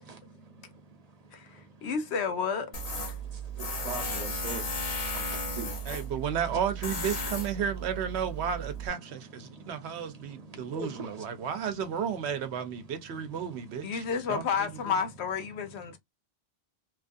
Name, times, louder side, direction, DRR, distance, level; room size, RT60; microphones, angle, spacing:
voice 1, 1.3-2.7 13.8-16.0, left 6 dB, 90° left, 1.0 m, -31 dB
Tools, 2.7-8.9, equal, 40° left, 0.7 m, -35 dB
voice 2, 3.6-4.7 5.1-5.7 10.5-11.1, right 4 dB, 40° right, 0.9 m, -40 dB
voice 3, 5.8-15.0, right 7 dB, 85° right, 1.0 m, -33 dB
3.0 x 2.4 x 2.5 m
omnidirectional pair, 1.1 m